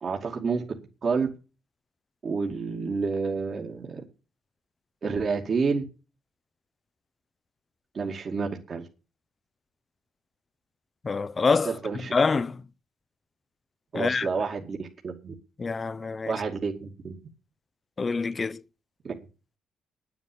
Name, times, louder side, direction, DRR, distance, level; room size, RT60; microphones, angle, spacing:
voice 1, 0.0-0.6 1.0-1.3 2.2-4.0 5.0-5.8 7.9-8.9 11.7-12.1 13.9-15.3 16.3-17.2 19.0-19.1, right 4 dB, 45° right, 2.4 m, -29 dB
voice 2, 11.0-11.7 12.1-12.5 13.9-14.3 15.6-16.3 18.0-18.6, left 4 dB, 35° left, 0.6 m, -25 dB
9.5 x 9.5 x 8.6 m
cardioid pair, 90°, 0 cm